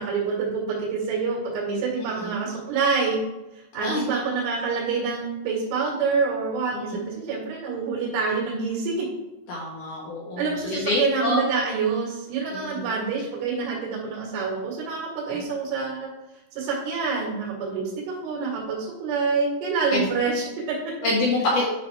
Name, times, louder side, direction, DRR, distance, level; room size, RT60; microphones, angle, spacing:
voice 1, 0.0-3.2 3.7-9.1 10.4-16.1 16.6-20.9, right 5 dB, 75° right, -5 dB, 4.3 m, -27 dB
voice 2, 2.0-2.3 3.8-4.0 6.7-7.0 9.5-11.4 12.5-12.9 19.9-20.1 21.0-21.7, left 2 dB, 70° left, -4 dB, 2.0 m, -26 dB
10.0 x 5.7 x 3.4 m, 1.0 s
omnidirectional pair, 5.7 m